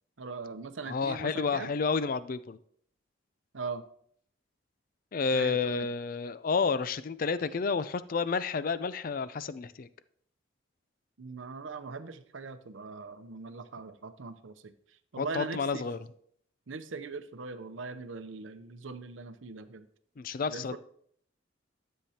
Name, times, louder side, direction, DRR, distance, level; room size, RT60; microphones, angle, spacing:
voice 1, 0.2-1.7 3.5-3.8 5.3-5.9 11.2-15.9 16.7-19.9 20.5-20.8, right 4 dB, 85° right, 11 dB, 0.7 m, -41 dB
voice 2, 0.9-2.6 5.1-9.9 15.2-16.0 20.2-20.8, left 5 dB, 45° left, 15 dB, 0.4 m, -30 dB
13.0 x 7.5 x 2.8 m, 0.65 s
head